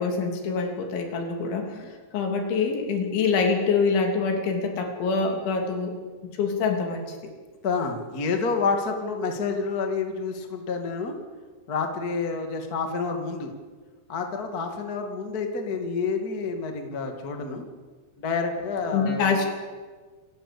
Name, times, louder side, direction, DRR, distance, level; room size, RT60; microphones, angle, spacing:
voice 1, 0.0-1.7 2.1-6.0 6.4-7.1 18.9-19.5, left 5 dB, 85° left, 3 dB, 5.4 m, -25 dB
voice 2, 7.6-11.1 11.7-13.5 14.1-17.7 18.2-19.4, left 4 dB, 35° left, 4 dB, 1.5 m, -29 dB
28.0 x 13.5 x 8.6 m, 1.4 s
omnidirectional pair, 5.2 m